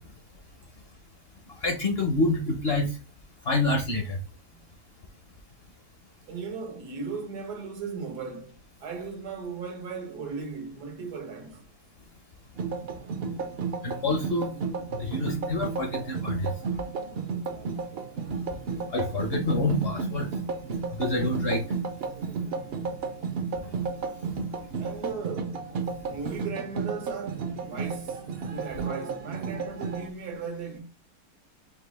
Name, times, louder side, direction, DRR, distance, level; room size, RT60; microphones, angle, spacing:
voice 1, 1.6-2.9 3.5-4.2 13.8-14.5 15.0-16.5 18.9-20.3 21.0-21.6, left 2 dB, 50° left, 0.8 m, -27 dB
voice 2, 6.3-11.7 24.8-25.7 26.1-30.8, right 5 dB, 85° right, 1.6 m, -37 dB
sound 1, 12.6-30.1, right 5 dB, 60° right, 0.6 m, -33 dB
5.2 x 2.3 x 3.3 m
omnidirectional pair, 1.7 m